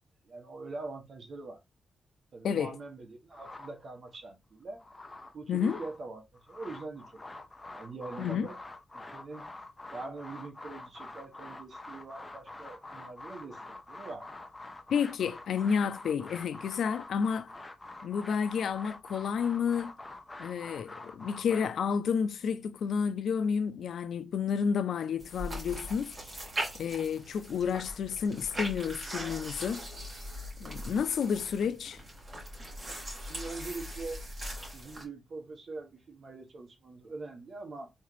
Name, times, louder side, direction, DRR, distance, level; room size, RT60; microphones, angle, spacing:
voice 1, 0.2-1.6 2.3-4.8 5.3-8.6 8.9-9.5 9.9-14.4 33.2-34.2 34.7-37.9, right 3 dB, 55° right, 1.2 m, -43 dB
sound 1, 3.3-4.2 4.6-6.0 6.3-21.7, left 2 dB, 20° left, 0.8 m, -46 dB
voice 2, 5.5-5.8 8.2-8.5 14.9-17.5 18.0-19.9 20.4-26.1 26.7-29.8 30.6-32.0, left 6 dB, 80° left, 0.4 m, -30 dB
sound 2, 25.2-35.0, equal, 30° right, 2.4 m, -40 dB
3.6 x 3.2 x 3.2 m
cardioid pair, 105°, 0 cm